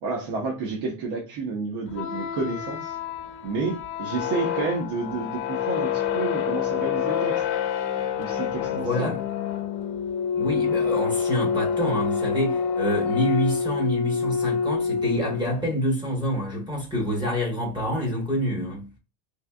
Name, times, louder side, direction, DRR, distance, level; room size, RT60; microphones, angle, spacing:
voice 1, 0.0-3.0 3.4-7.4 8.2-9.1, right 4 dB, 60° right, 1.0 m, -30 dB
sound 1, 1.9-15.6, left 7 dB, 75° left, 0.8 m, -27 dB
voice 2, 8.7-9.2 10.3-18.9, equal, 10° right, 0.9 m, -27 dB
3.3 x 3.3 x 2.3 m
cardioid pair, 165°, 44 cm